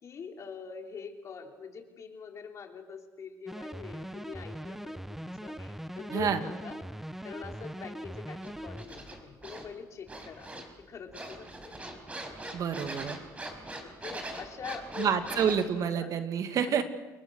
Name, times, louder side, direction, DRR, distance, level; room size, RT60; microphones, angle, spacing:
voice 1, 0.0-6.8 7.2-10.5 10.8-11.8 12.6-13.0 13.8-15.4 16.0-16.1, left 6 dB, 50° left, 3 dB, 3.5 m, -44 dB
sound 1, 3.5-8.8, right 1 dB, 5° right, 0.8 m, -41 dB
sound 2, 8.4-9.7 10.1-10.8 11.1-15.7, right 1 dB, 20° right, 5.0 m, -42 dB
voice 2, 12.5-13.2 15.0-16.8, right 7 dB, 60° right, 8 dB, 2.3 m, -28 dB
29.5 x 21.5 x 6.4 m, 1.2 s
cardioid pair, 100°, 7 cm